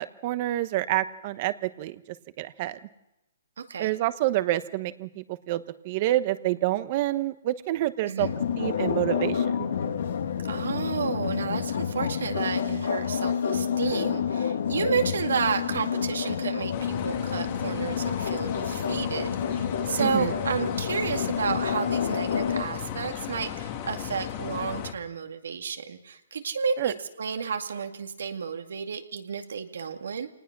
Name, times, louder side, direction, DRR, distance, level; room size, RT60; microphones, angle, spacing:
voice 1, 0.0-2.8 3.8-8.3 8.6-9.7 20.0-20.3 26.8-26.9, right 15 dB, 35° right, 13 dB, 1.0 m, -28 dB
voice 2, 3.6-3.9 8.0-8.3 10.5-30.3, right 6 dB, 80° right, 5 dB, 2.2 m, -31 dB
sound 1, 8.2-22.6, left 7 dB, 70° left, 2.2 m, -29 dB
sound 2, 16.7-24.9, left 10 dB, 35° left, 1.7 m, -36 dB
26.0 x 19.5 x 6.1 m, 0.89 s
hypercardioid pair, 160°, 0 cm